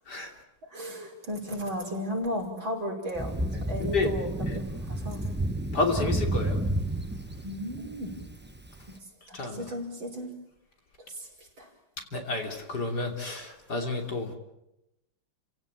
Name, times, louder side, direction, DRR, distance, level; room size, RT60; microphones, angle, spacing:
voice 1, 0.7-5.2 7.4-8.2 9.3-10.3 11.1-11.3 11.6-11.7, equal, 65° right, 0 dB, 6.3 m, -35 dB
Thunder, 3.1-8.8, right 1 dB, 15° right, 0.3 m, -31 dB
voice 2, 3.5-4.1 4.5-4.6 5.7-6.6 9.3-9.6 12.1-14.4, left 3 dB, 50° left, 3 dB, 3.6 m, -30 dB
30.0 x 17.0 x 9.1 m, 0.89 s
omnidirectional pair, 2.2 m